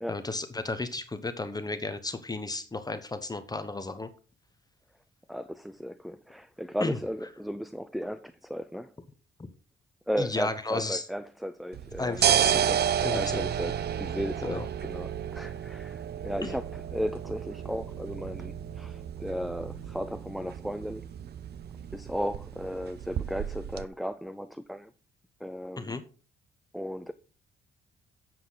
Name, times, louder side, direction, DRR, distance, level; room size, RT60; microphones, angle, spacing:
voice 1, 0.1-4.1 6.8-7.0 10.2-11.0 12.0-12.6 13.0-13.5 14.4-14.6 16.4-16.5 25.8-26.0, left 2 dB, 20° left, 1.1 m, -33 dB
voice 2, 5.3-8.9 10.1-21.1 21.9-24.9 25.4-26.0 26.7-27.1, equal, ahead, 0.5 m, -35 dB
sound 1, 11.7-23.8, right 9 dB, 55° right, 0.7 m, -31 dB
11.0 x 7.8 x 4.0 m
cardioid pair, 90°, 20 cm